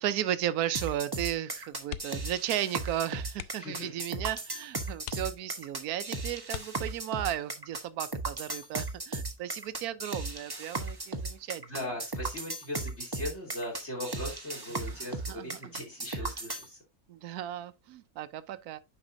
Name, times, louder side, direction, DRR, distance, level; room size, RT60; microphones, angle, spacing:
voice 1, 0.0-11.9 14.8-15.5 17.1-18.8, right 12 dB, 85° right, 1.1 m, -35 dB
sound 1, 0.7-16.7, right 2 dB, 20° right, 0.9 m, -36 dB
sound 2, 1.8-2.4 2.7-2.8 3.3-3.8 4.4-4.5 5.0-5.8 6.5-7.2 8.8-9.1 9.5-9.6, left 12 dB, 75° left, 1.0 m, -43 dB
voice 2, 3.6-4.0 11.6-16.8, left 1 dB, 50° left, 3.1 m, -39 dB
9.7 x 5.6 x 2.6 m
omnidirectional pair, 1.6 m